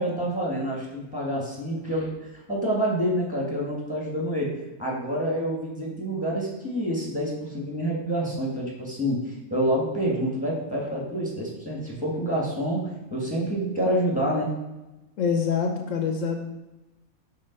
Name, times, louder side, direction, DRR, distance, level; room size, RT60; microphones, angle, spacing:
voice 1, 0.0-2.1 2.5-14.5, right 1 dB, 5° right, -3 dB, 1.7 m, -27 dB
voice 2, 15.2-16.4, left 6 dB, 70° left, 4 dB, 1.0 m, -25 dB
5.6 x 4.4 x 5.3 m, 1.0 s
omnidirectional pair, 1.5 m